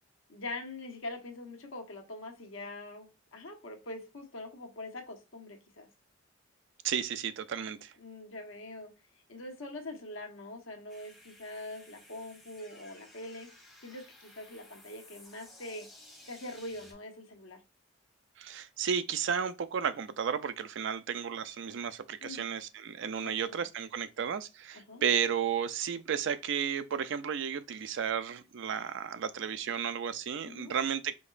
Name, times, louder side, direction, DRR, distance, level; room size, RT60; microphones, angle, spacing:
voice 1, 0.3-5.9 8.0-8.9 9.3-13.5 13.8-15.9 16.3-17.6 22.2-22.5 23.2-23.6 24.7-25.0 30.4-30.7, left 2 dB, 80° left, 1.1 m, -43 dB
voice 2, 6.8-7.9 18.4-31.1, right 7 dB, 65° right, 0.4 m, -33 dB
sound 1, 10.9-16.9, left 1 dB, ahead, 1.8 m, -55 dB
5.2 x 3.8 x 2.4 m
head